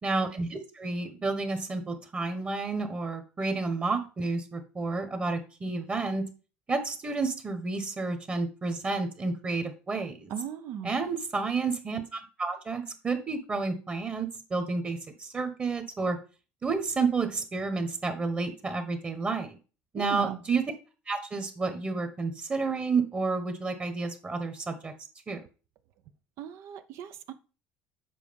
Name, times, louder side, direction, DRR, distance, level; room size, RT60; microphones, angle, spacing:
voice 1, 0.0-6.3 6.7-10.3 10.8-16.2 16.6-19.5 19.9-20.6 21.1-24.9 25.3-25.4, right 4 dB, 25° right, 1.4 m, -30 dB
voice 2, 10.3-10.9 19.9-20.4 26.4-27.3, right 9 dB, 65° right, 0.8 m, -37 dB
7.6 x 4.9 x 5.3 m
supercardioid pair, 110°, 5 cm